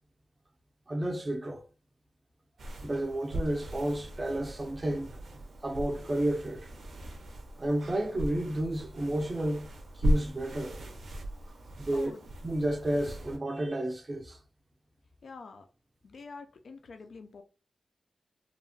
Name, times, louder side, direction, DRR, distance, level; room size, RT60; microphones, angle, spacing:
voice 1, 0.9-1.6 2.8-5.1 5.6-6.7 7.6-9.7 10.0-10.8 11.8-12.1 12.4-14.4, right 1 dB, 30° right, 0.4 m, -31 dB
sound 1, 2.6-13.4, equal, 90° right, 0.5 m, -37 dB
voice 2, 11.9-12.2 15.2-15.7 16.0-17.4, left 4 dB, 70° left, 0.3 m, -46 dB
2.8 x 2.0 x 2.6 m
wide cardioid pair, 105°, 0 cm